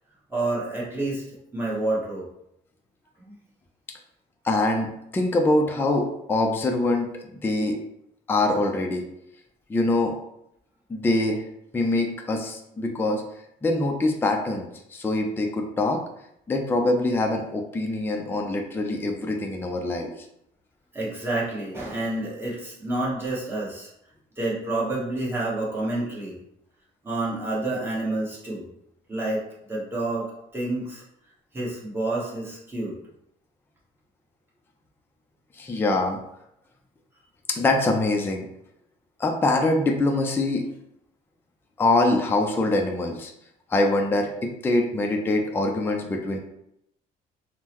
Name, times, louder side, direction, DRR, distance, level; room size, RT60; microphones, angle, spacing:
voice 1, 0.3-1.2 1.5-2.3 3.2-3.3 20.9-23.9 24.4-26.4 27.0-28.6 29.1-29.4 29.7-30.3 30.5-31.0 31.5-32.9, right 2 dB, 15° right, -6 dB, 1.2 m, -28 dB
voice 2, 4.4-7.8 8.3-9.0 9.7-10.1 10.9-11.4 11.7-13.2 13.6-16.0 16.5-20.1 35.6-36.2 37.5-38.5 39.2-40.7 41.8-43.3 43.7-46.4, left 2 dB, 15° left, 2 dB, 0.4 m, -24 dB
3.6 x 2.1 x 2.9 m, 0.77 s
cardioid pair, 110°, 17 cm